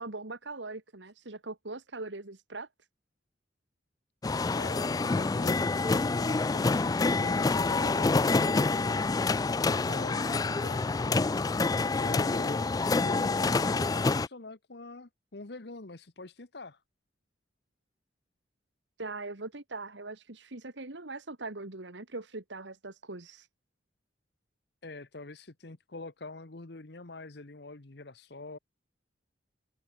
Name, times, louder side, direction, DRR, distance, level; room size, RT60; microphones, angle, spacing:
voice 1, 0.0-2.7 19.0-23.5, right 3 dB, 75° right, 2.0 m, -41 dB
sound 1, 4.2-14.3, left 3 dB, 20° left, 0.3 m, -27 dB
voice 2, 4.5-5.8 6.1-9.0 9.8-11.2 12.0-12.7 13.0-16.8 24.8-28.6, left 2 dB, 65° left, 1.2 m, -45 dB
head